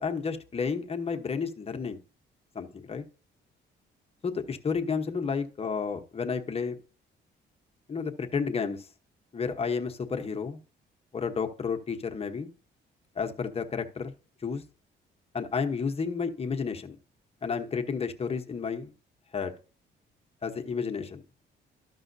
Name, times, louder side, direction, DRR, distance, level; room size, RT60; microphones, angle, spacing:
voice 1, 0.0-2.0 2.5-3.0 4.2-6.8 7.9-8.9 9.3-10.6 11.1-12.5 13.1-14.1 14.4-14.6 15.3-17.0 17.4-18.9 19.3-19.5 20.4-21.2, left 5 dB, 30° left, 1.0 m, -31 dB
12.5 x 5.6 x 2.7 m
cardioid pair, 90°, 20 cm